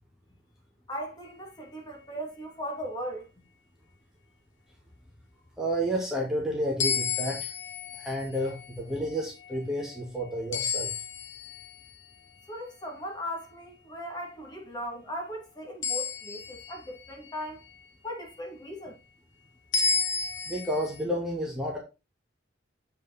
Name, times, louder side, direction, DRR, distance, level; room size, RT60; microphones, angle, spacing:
voice 1, 0.9-3.3 12.5-17.6 18.0-18.9, equal, 25° left, 2.5 m, -38 dB
voice 2, 5.6-7.5 8.0-10.9 20.5-21.8, equal, 5° right, 1.9 m, -31 dB
sound 1, 6.8-12.3 15.8-17.9 19.7-21.0, left 6 dB, 90° left, 1.3 m, -33 dB
7.5 x 5.4 x 4.1 m
head